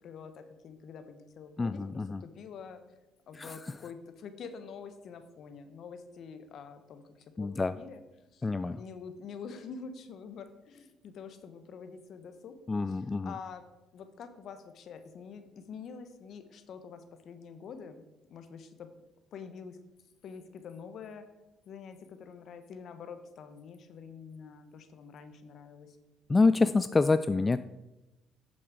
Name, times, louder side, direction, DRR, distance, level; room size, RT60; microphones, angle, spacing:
voice 1, 0.0-2.8 3.3-12.6 12.9-13.6 13.9-18.9 19.3-19.8 20.2-21.2 21.7-26.0, left 6 dB, 60° left, 10 dB, 1.0 m, -46 dB
voice 2, 1.6-2.2 3.4-3.5 7.4-7.8 8.4-8.8 12.7-13.3 26.3-27.6, left 3 dB, 25° left, 12 dB, 0.3 m, -26 dB
7.9 x 7.2 x 4.8 m, 1.0 s
supercardioid pair, 70°, 0 cm